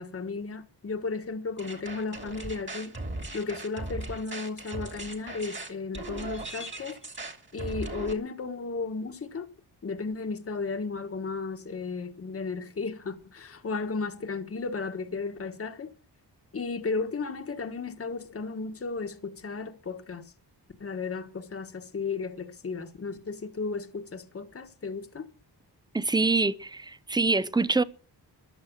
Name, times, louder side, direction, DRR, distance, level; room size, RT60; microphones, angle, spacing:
voice 1, 0.0-2.9 3.3-7.0 7.5-9.5 9.8-15.9 16.5-20.3 20.8-25.3, left 4 dB, 35° left, 1.4 m, -34 dB
sound 1, 1.6-8.1, right 2 dB, 30° right, 2.4 m, -38 dB
voice 2, 25.9-27.8, right 3 dB, 10° right, 0.6 m, -25 dB
14.5 x 11.0 x 6.2 m
wide cardioid pair, 145°, 40 cm